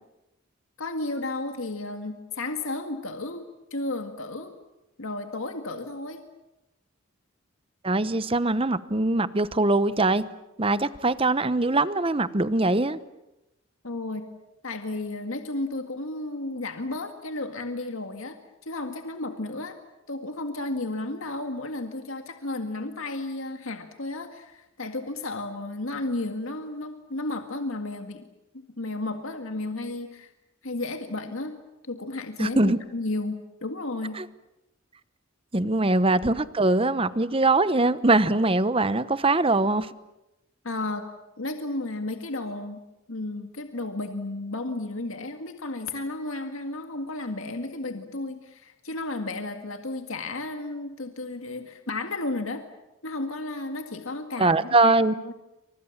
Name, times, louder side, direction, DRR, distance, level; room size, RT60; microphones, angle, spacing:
voice 1, 0.8-4.5 5.0-6.3 13.8-14.3 14.6-18.4 18.6-19.8 20.1-28.3 28.8-30.3 30.6-31.6 31.8-34.2 40.6-41.1 41.4-42.8 43.1-52.7 53.0-54.9 55.2-55.3, left 2 dB, 80° left, 5 dB, 1.9 m, -33 dB
voice 2, 7.8-10.3 10.6-13.0 32.4-32.8 34.2-34.3 35.5-39.9 54.4-55.1, right 2 dB, 25° right, 14 dB, 0.9 m, -22 dB
29.0 x 25.5 x 7.3 m, 0.95 s
head